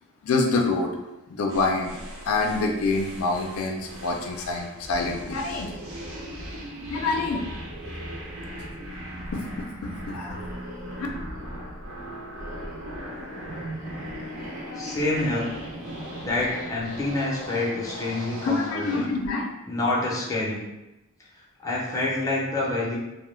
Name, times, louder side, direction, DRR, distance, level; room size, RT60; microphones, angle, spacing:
voice 1, 0.2-0.9 1.3-2.0 2.3-5.7 6.9-7.4 9.3-10.4 14.7-14.9 18.4-19.5, left 3 dB, 85° left, 1 dB, 0.4 m, -26 dB
sound 1, 1.5-19.2, equal, 70° right, 0.7 m, -40 dB
sound 2, 4.8-17.3, right 1 dB, 40° right, 0.4 m, -40 dB
voice 2, 14.8-15.5 16.2-19.1 19.7-20.6 21.6-23.0, left 2 dB, 15° left, -5 dB, 0.5 m, -27 dB
2.2 x 2.0 x 3.0 m, 0.99 s
head